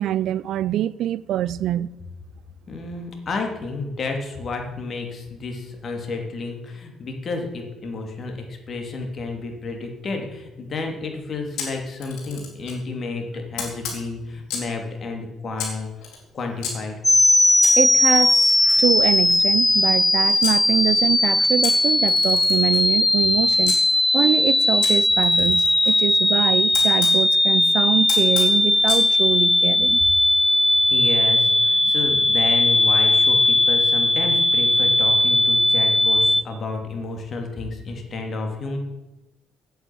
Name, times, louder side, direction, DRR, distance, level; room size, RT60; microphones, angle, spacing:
voice 1, 0.0-1.9 17.8-23.8 24.1-30.0, right 12 dB, 70° right, 0.4 m, -24 dB
voice 2, 2.7-15.9 16.3-16.9 30.9-38.8, left 3 dB, 45° left, 2.9 m, -31 dB
Camera, 11.6-12.8 13.6-14.8 15.6-16.7 17.6-20.6 21.6-23.8 24.8-27.2 28.1-29.1, left 6 dB, 85° left, 3.9 m, -34 dB
sound 1, 17.0-36.4, left 2 dB, 10° left, 0.4 m, -18 dB
9.0 x 7.9 x 9.2 m
cardioid pair, 105°, 0 cm